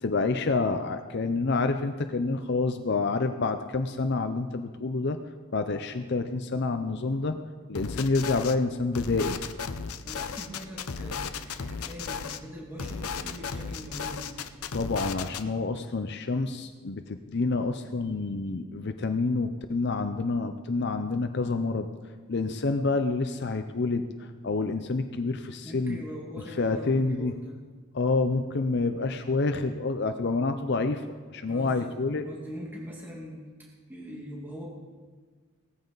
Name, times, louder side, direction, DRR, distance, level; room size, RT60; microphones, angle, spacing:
voice 1, 0.0-5.2 5.5-7.4 7.7-9.4 14.7-21.9 22.3-26.0 26.6-27.3 27.9-31.1 31.3-32.3, left 3 dB, 50° left, 8 dB, 0.6 m, -28 dB
sound 1, 7.7-8.5 8.9-12.4 12.8-15.4, left 5 dB, 85° left, 0.8 m, -35 dB
voice 2, 10.0-14.2 25.6-27.5 31.5-34.7, equal, 10° right, -3 dB, 2.0 m, -42 dB
18.0 x 14.5 x 4.0 m, 1.5 s
head